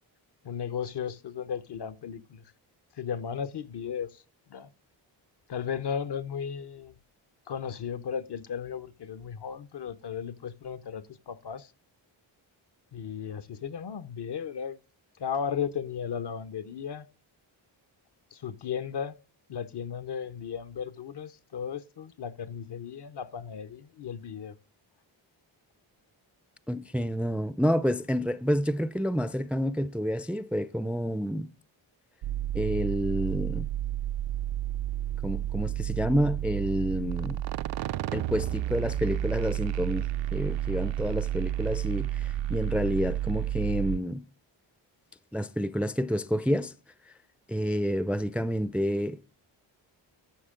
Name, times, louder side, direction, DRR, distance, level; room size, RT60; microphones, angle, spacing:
voice 1, 0.4-2.5 2.9-4.2 4.5-4.7 5.5-6.9 7.5-11.7 12.9-14.8 15.2-17.1 18.3-19.2 19.5-24.6, left 7 dB, 55° left, 0.8 m, -35 dB
voice 2, 26.7-31.5 32.5-33.7 35.2-37.4 38.1-40.1 40.3-44.2 45.3-46.7 47.5-49.2, equal, 5° right, 0.5 m, -29 dB
sound 1, 32.2-44.0, right 12 dB, 65° right, 0.5 m, -31 dB
13.0 x 6.4 x 3.7 m
cardioid pair, 55°, 48 cm